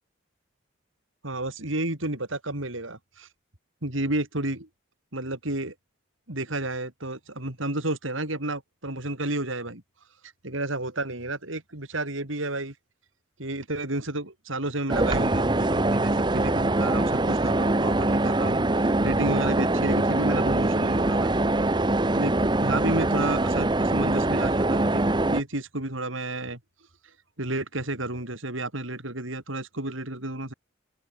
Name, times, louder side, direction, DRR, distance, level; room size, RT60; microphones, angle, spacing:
voice 1, 1.2-3.3 3.8-4.7 5.1-5.7 6.3-9.8 10.4-12.7 13.4-18.6 19.0-21.3 22.1-26.6 27.4-30.5, right 2 dB, 75° right, 4.5 m, -31 dB
sound 1, 14.9-25.4, right 2 dB, 20° right, 0.9 m, -23 dB
open air
head